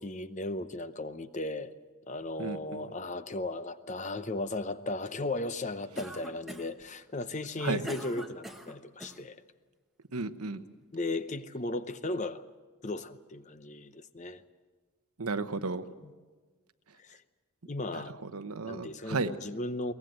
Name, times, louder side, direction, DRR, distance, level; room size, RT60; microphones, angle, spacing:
voice 1, 0.0-1.7 2.1-9.4 10.5-10.6 10.9-12.4 12.8-14.4 15.8-16.1 17.0-17.2 17.7-18.2 18.6-19.9, left 2 dB, 30° left, 0.7 m, -36 dB
voice 2, 2.4-2.8 7.6-7.8 10.1-10.6 15.2-15.8 18.3-19.3, right 3 dB, 80° right, 1.0 m, -33 dB
Cough, 6.0-6.8 7.4-9.2, right 1 dB, ahead, 1.1 m, -43 dB
22.5 x 19.0 x 7.9 m
head